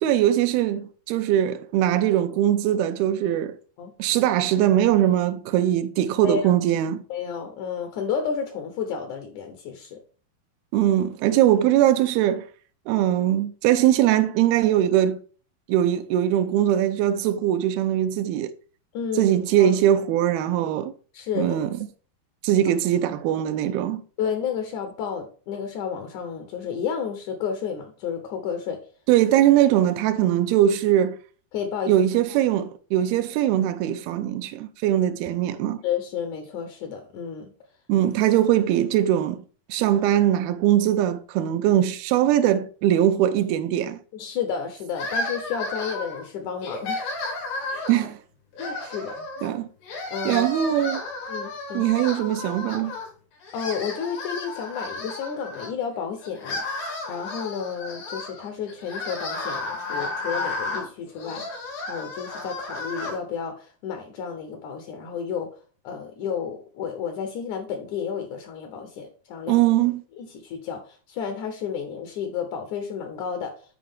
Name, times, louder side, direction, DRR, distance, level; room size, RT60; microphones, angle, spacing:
voice 1, 0.0-3.6 4.0-7.0 10.7-12.5 12.9-15.2 15.7-18.5 19.2-20.9 21.4-21.8 22.4-24.0 29.1-31.2 31.9-35.8 37.9-39.4 39.7-44.0 47.9-48.2 49.4-49.7 50.3-51.0 51.7-52.9 69.5-70.0, right 11 dB, 85° right, 2.5 m, -21 dB
voice 2, 6.2-6.6 7.1-10.0 18.9-19.7 21.1-21.6 24.2-28.8 31.5-31.9 35.8-37.5 38.2-38.3 44.1-47.1 47.7-47.9 48.6-49.5 50.1-50.7 51.3-51.9 53.5-56.6 57.1-61.4 61.9-65.5 65.8-69.6 70.2-73.5, left 7 dB, 70° left, 1.9 m, -31 dB
sound 1, 44.9-46.2 46.6-48.1 48.5-49.5 49.8-53.1 53.4-55.7 56.2-63.2, left 2 dB, 85° left, 4.6 m, -33 dB
9.0 x 4.7 x 3.6 m
omnidirectional pair, 4.4 m